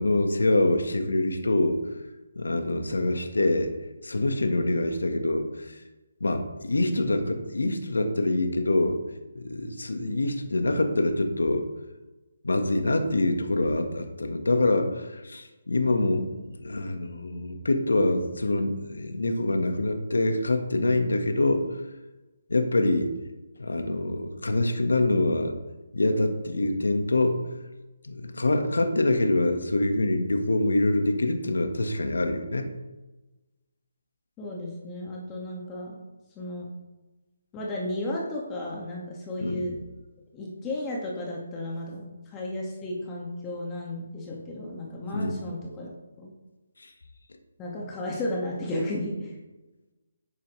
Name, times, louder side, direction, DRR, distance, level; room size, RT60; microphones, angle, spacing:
voice 1, 0.0-1.8 2.3-3.7 4.0-5.8 6.2-9.0 9.3-11.7 12.4-21.7 22.5-23.1 23.6-25.5 25.9-27.5 28.0-32.7 39.4-39.6 45.1-45.3 46.8-46.9, left 2 dB, 85° left, 5 dB, 1.7 m, -25 dB
voice 2, 34.4-36.0 36.4-36.7 37.5-39.8 40.3-46.3 47.6-49.3, left 1 dB, 15° left, -3 dB, 2.1 m, -34 dB
11.5 x 8.7 x 3.4 m, 1.1 s
figure-of-eight pair, 155°, 0 cm